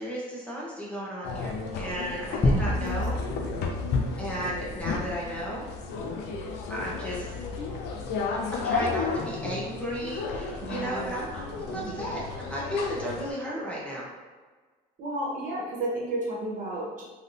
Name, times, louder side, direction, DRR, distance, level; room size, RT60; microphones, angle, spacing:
voice 1, 0.0-3.2 4.2-5.7 6.7-7.3 8.5-14.1, equal, 5° left, -6 dB, 0.8 m, -34 dB
sound 1, 1.2-13.3, left 4 dB, 85° left, 0.5 m, -33 dB
sound 2, 2.4-5.2, left 1 dB, 30° left, 0.5 m, -29 dB
voice 2, 7.4-7.7 10.6-11.2 11.7-12.0 15.0-17.0, right 1 dB, 50° right, -4 dB, 1.1 m, -33 dB
3.2 x 2.7 x 2.6 m, 1.4 s
cardioid pair, 110°, 17 cm